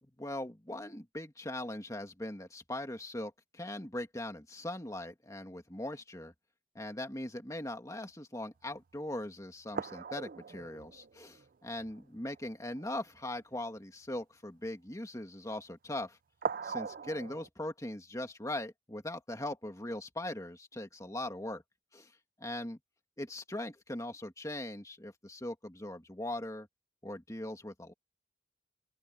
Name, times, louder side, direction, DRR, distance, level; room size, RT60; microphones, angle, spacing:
voice 1, 0.0-6.3 6.7-16.2 16.6-21.6 21.9-22.1 22.4-22.8 23.2-26.7 27.0-27.9, left 1 dB, 15° left, 2.4 m, -40 dB
sound 1, 8.6-8.7 9.2-9.3 9.7-12.0 12.3-12.4 12.8-13.0 16.4-17.5, right 5 dB, 45° right, 0.4 m, -40 dB
open air
head